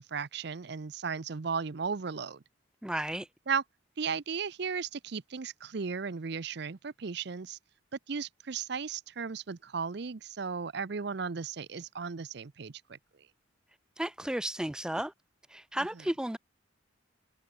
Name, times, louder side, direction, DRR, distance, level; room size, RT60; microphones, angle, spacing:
voice 1, 0.0-2.4 3.5-3.6 4.0-7.6 8.1-13.0, right 5 dB, 60° right, 0.6 m, -35 dB
voice 2, 2.8-3.3 14.0-15.1 15.5-16.4, right 1 dB, 5° right, 0.3 m, -33 dB
head